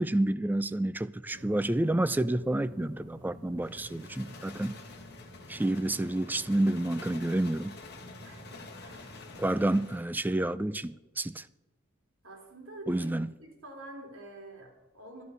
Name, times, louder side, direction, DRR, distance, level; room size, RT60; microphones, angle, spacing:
voice 1, 0.0-4.8 5.5-7.8 9.4-11.4 12.9-13.3, right 1 dB, 10° right, 0.3 m, -29 dB
sound 1, 1.3-9.7, equal, 25° right, 6.0 m, -49 dB
sound 2, 3.6-10.1, left 4 dB, 55° left, 1.7 m, -50 dB
voice 2, 8.2-9.2 12.2-13.1 13.4-15.2, right 2 dB, 75° right, 3.2 m, -47 dB
11.5 x 11.5 x 5.6 m
head